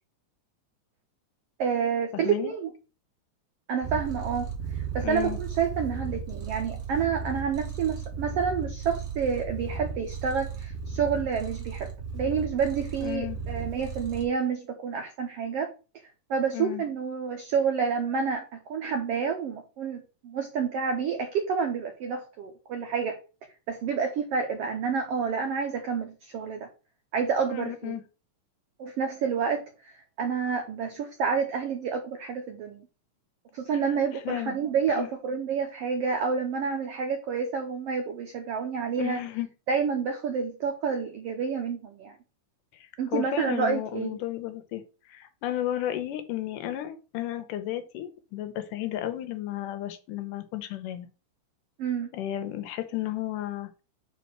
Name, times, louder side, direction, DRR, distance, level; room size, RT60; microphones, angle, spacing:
voice 1, 1.6-2.7 3.7-15.7 16.3-23.2 23.7-26.7 27.1-28.0 28.8-32.8 33.5-39.2 39.7-42.2 43.0-44.2 51.8-52.1, right 6 dB, 90° right, 5 dB, 1.3 m, -29 dB
voice 2, 2.1-2.5 5.0-5.4 13.0-13.4 16.5-16.8 27.5-28.0 34.3-34.6 35.0-35.1 39.0-39.5 43.1-44.8 45.1-51.1 52.1-53.7, left 13 dB, 80° left, 9 dB, 2.3 m, -33 dB
Purr, 3.8-14.2, right 5 dB, 40° right, 1.0 m, -35 dB
4.9 x 4.2 x 5.9 m, 0.33 s
omnidirectional pair, 3.8 m